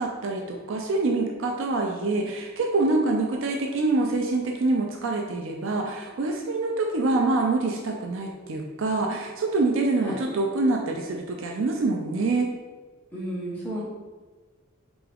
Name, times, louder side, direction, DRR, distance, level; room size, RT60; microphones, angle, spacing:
voice 1, 0.0-12.5, right 2 dB, 70° right, 1 dB, 0.4 m, -25 dB
voice 2, 13.1-13.8, right 1 dB, 10° left, -8 dB, 1.0 m, -32 dB
3.9 x 3.4 x 3.4 m, 1.3 s
head